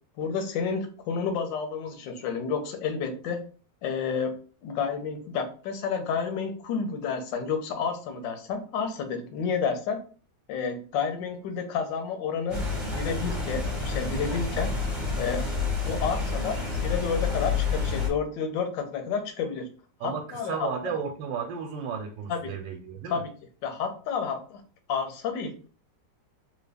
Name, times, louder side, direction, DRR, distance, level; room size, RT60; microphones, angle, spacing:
voice 1, 0.2-3.4 3.8-4.3 4.6-10.0 10.5-12.6 12.9-14.7 15.2-15.4 15.8-19.7 20.0-20.7 22.3-22.5 23.1-23.3 23.6-24.6 24.9-25.7, left 6 dB, 85° left, 6 dB, 1.4 m, -30 dB
sound 1, 12.5-18.1, left 4 dB, ahead, 0.7 m, -29 dB
voice 2, 20.0-23.2, right 6 dB, 90° right, 4 dB, 1.3 m, -34 dB
3.4 x 2.2 x 3.3 m, 0.39 s
omnidirectional pair, 1.9 m